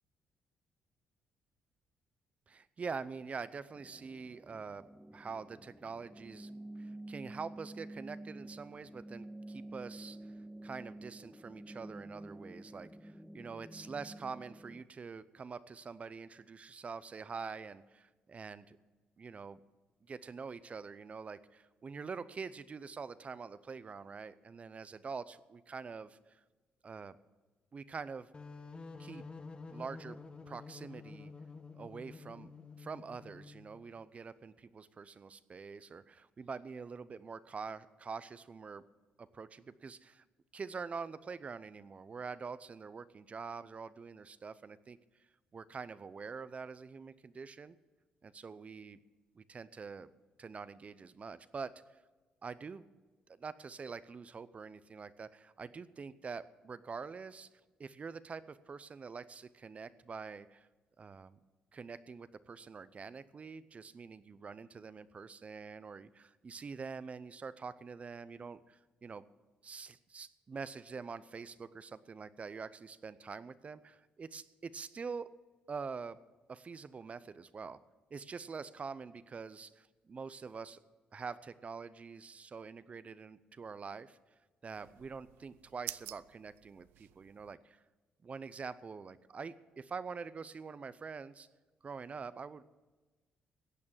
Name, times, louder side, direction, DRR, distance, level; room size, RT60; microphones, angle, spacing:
voice 1, 2.5-10.3 10.6-18.8 19.2-19.6 20.1-26.4 26.8-27.2 27.7-28.3 29.0-29.2 29.7-30.2 30.5-31.3 31.7-32.5 32.8-38.8 39.2-40.2 40.5-45.0 45.5-47.8 48.2-49.0 49.4-50.1 50.4-51.8 52.4-52.9 53.4-57.5 57.8-60.7 61.0-61.4 61.7-69.3 69.6-75.3 75.7-76.2 76.5-77.8 78.1-80.8 81.1-84.2 84.6-87.8 88.2-91.5 91.8-92.6, right 5 dB, 40° right, 16 dB, 0.6 m, -45 dB
sound 1, 3.7-14.8, right 1 dB, ahead, 0.3 m, -49 dB
sound 2, 28.3-33.8, left 4 dB, 30° left, 1.1 m, -49 dB
sound 3, 84.7-87.5, right 15 dB, 85° right, 0.4 m, -49 dB
15.0 x 8.6 x 7.3 m, 1.3 s
supercardioid pair, 75°, 4 cm